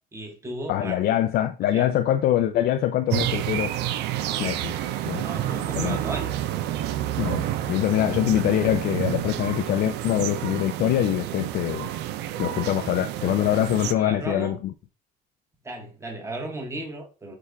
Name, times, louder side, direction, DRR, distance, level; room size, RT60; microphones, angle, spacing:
voice 1, 0.1-1.2 1.7-1.9 5.0-6.4 13.5-13.6 13.9-14.6 15.6-17.4, right 2 dB, 15° right, 1.2 m, -35 dB
voice 2, 0.7-3.7 4.4-4.7 5.1-5.2 5.8-6.0 7.2-11.9 12.4-14.7, left 12 dB, 65° left, 0.4 m, -24 dB
sound 1, 3.1-13.9, right 13 dB, 80° right, 0.4 m, -29 dB
6.5 x 2.4 x 3.4 m
cardioid pair, 110°, 17 cm